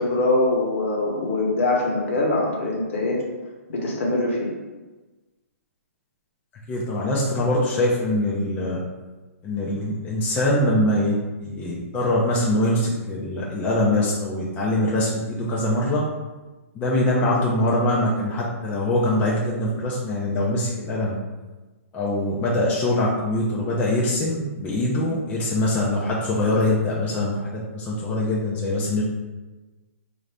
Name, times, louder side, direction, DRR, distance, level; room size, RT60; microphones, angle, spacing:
voice 1, 0.0-3.2 3.7-4.5, left 2 dB, 60° left, -1 dB, 1.1 m, -23 dB
voice 2, 6.7-8.8 9.4-16.0 16.7-21.2 21.9-29.0, left 1 dB, 20° left, -5 dB, 0.5 m, -23 dB
3.8 x 2.6 x 3.3 m, 1.2 s
hypercardioid pair, 145°, 8 cm